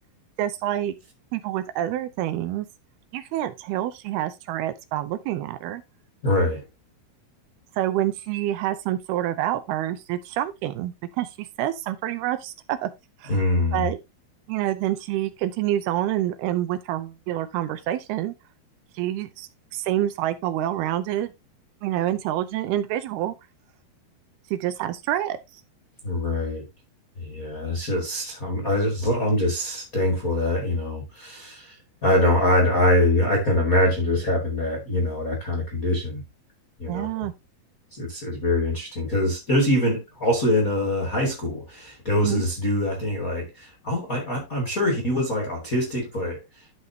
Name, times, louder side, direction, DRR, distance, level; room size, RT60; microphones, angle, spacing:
voice 1, 0.4-0.9 1.3-2.7 3.1-5.8 7.8-12.9 13.2-13.3 13.7-14.0 14.5-18.3 18.9-21.3 21.8-23.3 24.5-25.4 36.9-37.3 42.2-42.4, right 13 dB, 80° right, 2.6 m, -27 dB
voice 2, 6.2-6.6 13.3-13.9 26.0-26.6 27.2-31.8 32.0-36.2 36.8-37.3 37.9-46.4, left 1 dB, 35° left, 1.5 m, -24 dB
12.0 x 5.6 x 2.8 m
omnidirectional pair, 4.7 m